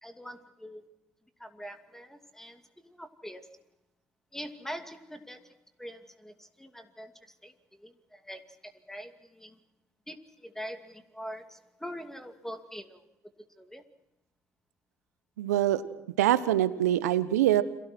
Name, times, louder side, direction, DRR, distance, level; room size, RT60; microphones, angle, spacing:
voice 1, 0.0-0.8 1.4-3.5 4.3-7.1 7.4-9.6 10.1-13.0 13.6-13.8, equal, 5° left, 8 dB, 2.5 m, -44 dB
voice 2, 15.4-15.8 16.2-17.6, right 13 dB, 85° right, 15 dB, 1.1 m, -24 dB
30.0 x 23.5 x 4.5 m, 0.92 s
hypercardioid pair, 60°, 8 cm